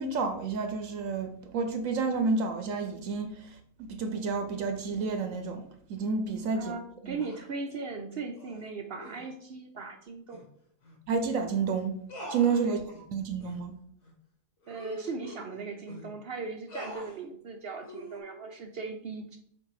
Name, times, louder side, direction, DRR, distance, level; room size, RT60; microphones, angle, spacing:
voice 1, 0.0-6.7 11.1-12.0 12.3-12.8 13.1-13.7, right 4 dB, 75° right, 1.0 m, -30 dB
voice 2, 6.6-10.4 12.6-12.8 14.7-19.4, right 4 dB, 60° right, 0.7 m, -38 dB
sound 1, 7.2-7.5 8.4-8.6 9.0-9.3 10.3-10.4 10.8-11.0 11.3-11.4 12.1-13.0 13.4-13.6 14.0-14.1 14.6-16.1 16.7-17.2 17.8-18.2, equal, 60° left, 1.8 m, -44 dB
7.5 x 2.7 x 4.8 m
omnidirectional pair, 1.4 m